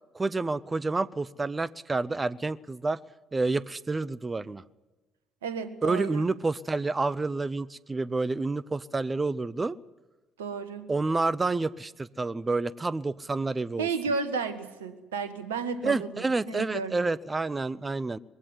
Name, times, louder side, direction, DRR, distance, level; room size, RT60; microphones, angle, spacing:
voice 1, 0.1-3.0 3.3-4.6 5.8-9.8 10.9-13.9 15.8-18.2, right 3 dB, 20° right, 20 dB, 0.7 m, -29 dB
voice 2, 5.4-6.3 10.4-10.9 13.8-16.9, right 5 dB, 75° right, 11 dB, 1.3 m, -33 dB
21.0 x 16.5 x 9.7 m, 1.2 s
figure-of-eight pair, 50°, 0 cm